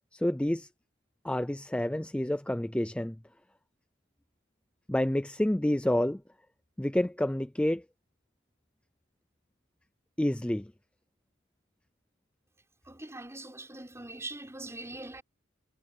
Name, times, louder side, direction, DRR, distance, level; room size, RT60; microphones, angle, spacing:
voice 1, 0.1-0.7 1.2-3.2 4.9-6.2 6.8-7.8 10.2-10.7, left 1 dB, 5° left, 0.4 m, -28 dB
voice 2, 12.8-15.2, right 2 dB, 15° right, 5.3 m, -42 dB
head